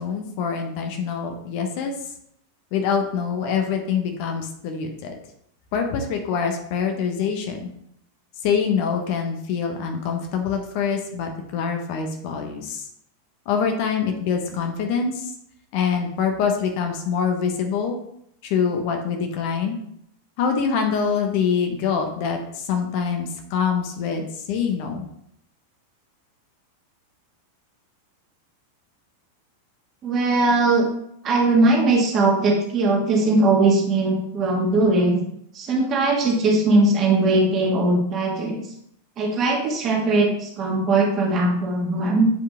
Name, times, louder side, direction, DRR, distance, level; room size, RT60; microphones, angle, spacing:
voice 1, 0.0-1.9 2.7-5.1 5.7-7.7 8.4-12.8 13.5-15.3 15.7-18.0 18.4-19.8 20.4-25.1, left 6 dB, 45° left, 4 dB, 1.2 m, -25 dB
voice 2, 30.0-30.9 31.2-35.2 35.5-38.6 39.2-42.3, right 2 dB, 30° right, -1 dB, 1.9 m, -20 dB
8.5 x 4.9 x 3.7 m, 0.73 s
figure-of-eight pair, 90°, 0 cm